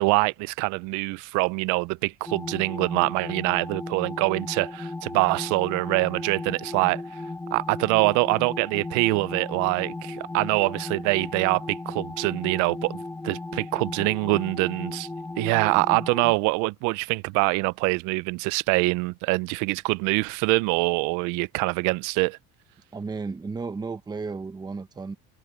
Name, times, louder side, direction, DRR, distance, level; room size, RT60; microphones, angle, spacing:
voice 1, 0.0-7.0 7.5-15.1 15.4-22.4, right 26 dB, 85° right, 0.5 m, -24 dB
sound 1, 2.3-16.4, left 2 dB, 10° left, 1.4 m, -36 dB
voice 2, 22.9-25.2, right 4 dB, 15° right, 0.9 m, -33 dB
cardioid pair, 150°, 29 cm